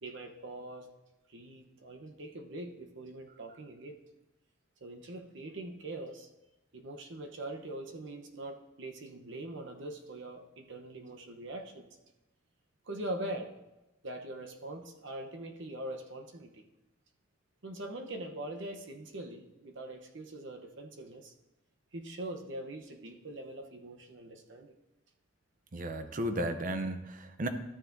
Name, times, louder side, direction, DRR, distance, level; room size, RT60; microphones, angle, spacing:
voice 1, 0.0-0.9 1.3-4.0 4.8-6.3 6.7-11.9 12.8-13.5 14.0-16.6 17.6-21.3 21.9-24.7, right 1 dB, 65° right, 4 dB, 1.0 m, -42 dB
voice 2, 25.7-27.5, right 1 dB, 40° right, 8 dB, 0.7 m, -34 dB
13.5 x 7.2 x 2.7 m, 0.98 s
head